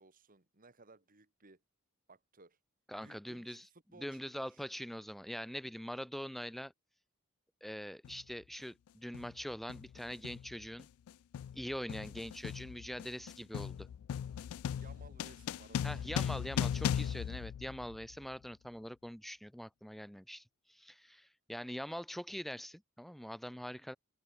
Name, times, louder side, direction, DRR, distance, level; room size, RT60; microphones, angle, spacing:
voice 1, 0.0-1.6 2.1-2.6 3.0-4.6 14.7-16.1, right 3 dB, 40° right, 2.6 m, -60 dB
voice 2, 2.9-3.7 4.0-6.7 7.6-10.9 11.5-13.9 15.8-24.0, equal, ahead, 0.3 m, -43 dB
sound 1, 8.0-8.2 9.1-9.4 9.7-18.2, left 8 dB, 80° left, 0.3 m, -38 dB
head